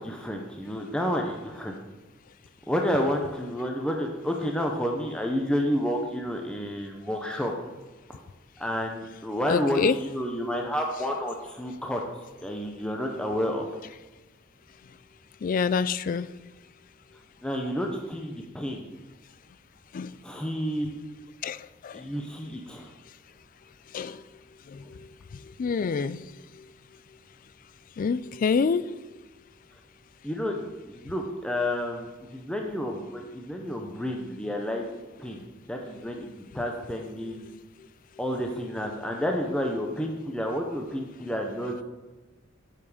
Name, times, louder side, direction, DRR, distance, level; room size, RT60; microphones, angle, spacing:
voice 1, 0.0-1.7 2.7-7.5 8.1-8.2 8.6-12.0 12.4-13.7 17.4-18.9 20.2-20.9 21.9-22.9 30.2-32.1 32.3-34.9 35.2-35.4 35.7-36.3 36.5-37.5 38.2-41.8, equal, 5° left, 1 dB, 0.7 m, -30 dB
voice 2, 9.5-10.0 15.4-16.3 19.9-20.1 21.4-22.1 23.9-24.2 24.7-25.0 25.6-26.3 28.0-28.9, left 5 dB, 45° left, 16 dB, 0.3 m, -27 dB
7.6 x 7.2 x 4.9 m, 1.2 s
head